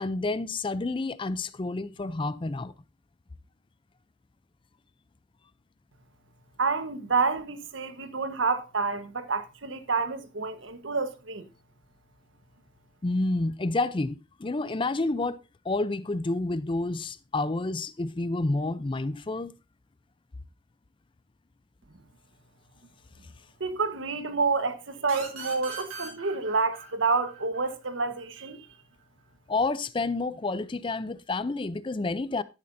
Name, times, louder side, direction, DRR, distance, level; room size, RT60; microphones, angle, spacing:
voice 1, 0.0-2.7 13.0-15.4 15.6-19.5 29.5-32.4, left 2 dB, 25° left, 0.4 m, -29 dB
voice 2, 6.6-11.4 23.6-28.6, right 4 dB, 70° right, 1.2 m, -28 dB
sound 1, 25.1-28.5, right 5 dB, 90° right, 3.3 m, -41 dB
11.5 x 11.0 x 2.6 m
head